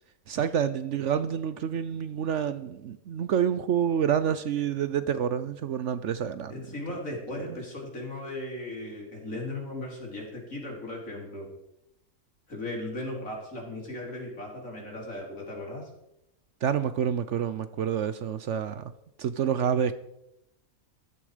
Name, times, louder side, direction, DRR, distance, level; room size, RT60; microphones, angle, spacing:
voice 1, 0.3-6.5 16.6-18.8 19.2-19.9, right 8 dB, 65° right, 0.9 m, -28 dB
voice 2, 6.5-11.5 12.5-15.8, left 1 dB, 65° left, 4.2 m, -37 dB
15.0 x 12.5 x 5.0 m
omnidirectional pair, 1.5 m